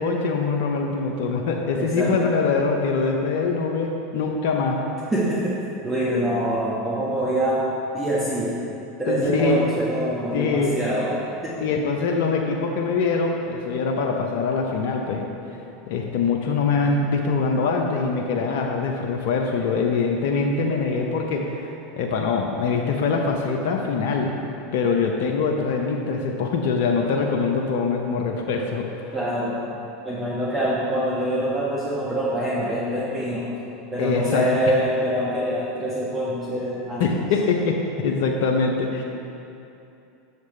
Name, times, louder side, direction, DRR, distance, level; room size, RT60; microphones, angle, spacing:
voice 1, 0.0-4.8 9.1-9.6 10.3-10.8 11.6-15.3 15.9-24.3 24.7-29.2 34.0-34.4 37.0-39.0, left 4 dB, 65° left, 2 dB, 0.6 m, -23 dB
voice 2, 1.8-2.1 5.1-5.5 5.8-7.6 7.9-8.5 9.0-11.2 11.4-11.7 29.1-29.6 30.0-33.5 33.9-37.0, right 1 dB, 15° right, -8 dB, 1.3 m, -25 dB
7.3 x 6.6 x 3.2 m, 2.7 s
hypercardioid pair, 90°, 0 cm